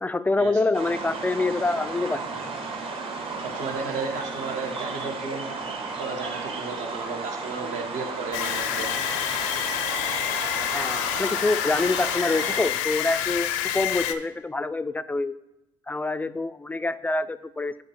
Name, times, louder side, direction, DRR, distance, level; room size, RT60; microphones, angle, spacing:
voice 1, 0.0-2.2 10.7-15.3 15.9-17.8, left 2 dB, 10° left, 14 dB, 0.3 m, -26 dB
sound 1, 0.7-12.7, right 4 dB, 45° right, 1.6 m, -34 dB
voice 2, 3.4-5.5 6.0-8.9, right 4 dB, 65° right, 2 dB, 1.5 m, -33 dB
sound 2, 8.3-14.1, left 11 dB, 85° left, 0.5 m, -28 dB
8.3 x 4.0 x 4.8 m, 0.92 s
supercardioid pair, 70°, 13 cm